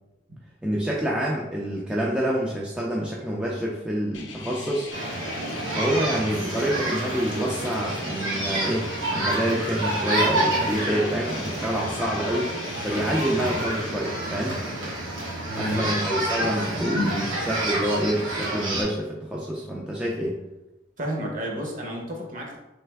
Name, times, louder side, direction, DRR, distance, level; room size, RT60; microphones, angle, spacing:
voice 1, 0.6-4.9 5.7-12.6 12.8-14.6 15.5-20.4, equal, 5° right, -4 dB, 0.3 m, -27 dB
sound 1, 4.1-13.9, left 4 dB, 70° left, 0.5 m, -40 dB
sound 2, 4.9-18.8, right 1 dB, 85° right, 1.3 m, -28 dB
voice 2, 15.5-16.1 21.0-22.6, equal, 40° right, 0 dB, 0.8 m, -31 dB
3.3 x 3.2 x 3.4 m, 0.99 s
head